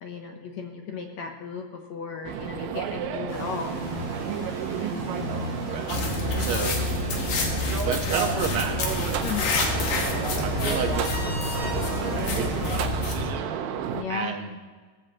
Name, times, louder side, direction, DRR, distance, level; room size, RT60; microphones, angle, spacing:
voice 1, 0.0-3.7 9.2-9.5 13.9-14.4, left 6 dB, 65° left, 3 dB, 2.0 m, -35 dB
sound 1, 2.2-14.0, right 8 dB, 80° right, 2.5 m, -32 dB
sound 2, 3.3-12.9, equal, 45° left, 6.6 m, -36 dB
sound 3, 5.9-13.3, left 3 dB, 90° left, 3.5 m, -28 dB
voice 2, 6.3-6.8 7.8-9.2 9.5-10.0 10.4-13.6 14.1-14.6, right 6 dB, 50° right, 2 dB, 1.8 m, -32 dB
17.0 x 15.5 x 3.0 m, 1.5 s
omnidirectional pair, 4.0 m